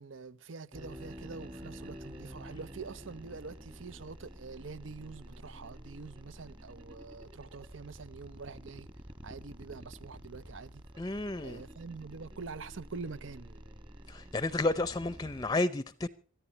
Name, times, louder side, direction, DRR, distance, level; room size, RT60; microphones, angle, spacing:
voice 1, 0.0-8.9 9.2-10.8 11.4-13.6, right 4 dB, 75° right, 0.8 m, -45 dB
sound 1, 0.7-15.5, equal, 25° right, 1.5 m, -49 dB
voice 2, 11.0-11.6 14.1-16.1, left 2 dB, 20° left, 0.6 m, -31 dB
25.0 x 14.0 x 2.9 m
head